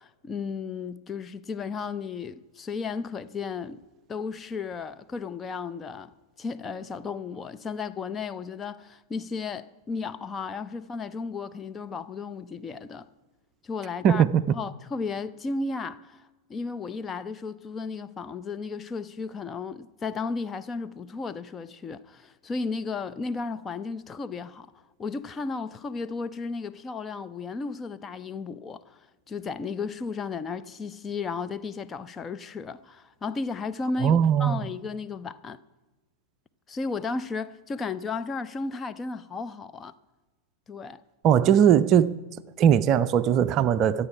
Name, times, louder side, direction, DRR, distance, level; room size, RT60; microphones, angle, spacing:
voice 1, 0.0-3.8 4.1-6.1 6.4-13.1 13.6-24.7 25.0-29.0 29.3-35.6 36.7-39.9 40.7-41.0, left 4 dB, 20° left, 0.6 m, -34 dB
voice 2, 14.0-14.5 34.0-34.6 41.2-42.1 42.6-44.1, right 9 dB, 35° right, 0.5 m, -20 dB
24.5 x 8.4 x 4.8 m
figure-of-eight pair, 90°, 0 cm